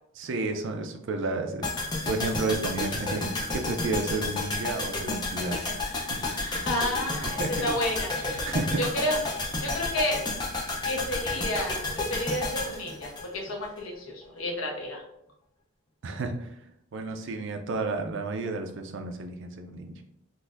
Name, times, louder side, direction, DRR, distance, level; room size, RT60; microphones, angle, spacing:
voice 1, 0.2-1.7 2.1-6.0 6.4-6.6 7.2-7.7 8.4-8.8 16.0-16.6 16.9-19.9, right 3 dB, 60° right, 5 dB, 0.4 m, -31 dB
sound 1, 1.6-13.8 14.1-14.2, left 2 dB, 20° left, 0.5 m, -31 dB
voice 2, 6.3-10.2 10.8-15.0, left 1 dB, 70° left, 0 dB, 0.8 m, -31 dB
3.9 x 2.5 x 2.5 m, 0.75 s
head